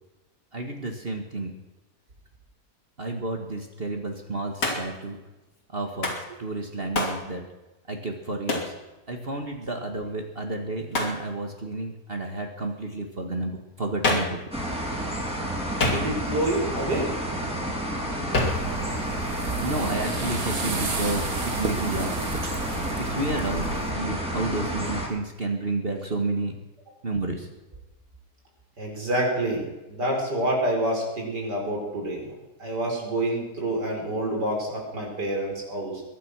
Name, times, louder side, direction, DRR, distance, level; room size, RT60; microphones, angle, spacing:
voice 1, 0.5-1.5 3.0-5.2 5.7-7.4 7.9-8.7 9.1-14.4 19.6-22.2 23.0-26.6 27.0-27.5, right 2 dB, 35° right, 3 dB, 1.9 m, -31 dB
Hands, 4.6-5.0 6.0-6.3 6.9-7.2 8.5-8.7 10.9-11.2 14.0-14.4 15.8-16.4 18.3-18.7, left 2 dB, 80° left, 3.4 m, -26 dB
sound 1, 14.5-25.1, right 1 dB, 5° right, 3.6 m, -30 dB
voice 2, 15.9-17.1 28.8-32.3 32.6-36.0, right 1 dB, 85° right, -1 dB, 5.5 m, -27 dB
sound 2, 18.4-23.9, right 3 dB, 60° right, 2.4 m, -33 dB
22.0 x 10.5 x 6.2 m, 1.1 s
omnidirectional pair, 1.8 m